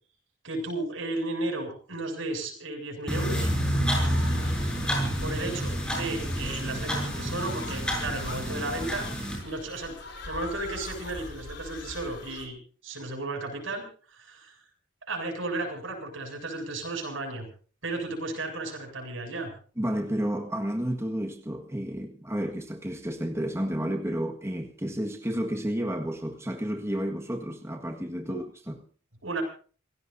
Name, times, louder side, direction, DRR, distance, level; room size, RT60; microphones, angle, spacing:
voice 1, 0.4-3.5 5.2-9.1 9.4-10.0 10.2-12.6 12.8-14.5 15.1-17.5 17.8-19.5 28.3-28.4 29.2-29.4, right 2 dB, 85° right, 7.5 m, -34 dB
sound 1, 3.1-9.4, equal, 5° left, 7.3 m, -29 dB
sound 2, 3.9-12.5, left 2 dB, 65° left, 4.3 m, -41 dB
voice 2, 19.8-28.8, equal, 15° right, 1.7 m, -31 dB
28.0 x 17.0 x 2.7 m
head